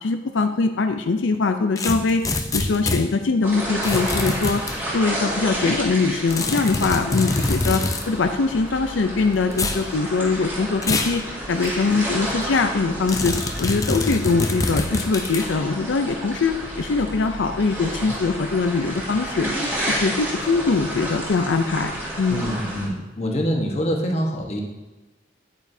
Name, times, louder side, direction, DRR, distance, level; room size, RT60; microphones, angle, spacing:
voice 1, 0.0-4.6 4.9-19.5 19.9-22.5, left 4 dB, 80° left, 6 dB, 0.5 m, -22 dB
sound 1, 1.8-3.0 3.8-4.8 6.3-8.1 9.5-9.8 10.8-11.2 11.6-11.7 13.1-15.5, left 2 dB, 20° left, 0.5 m, -25 dB
sound 2, 3.4-22.9, equal, 10° right, 2.0 m, -30 dB
voice 2, 22.3-24.6, equal, 35° left, 1 dB, 1.1 m, -25 dB
9.4 x 8.9 x 2.7 m, 1.1 s
head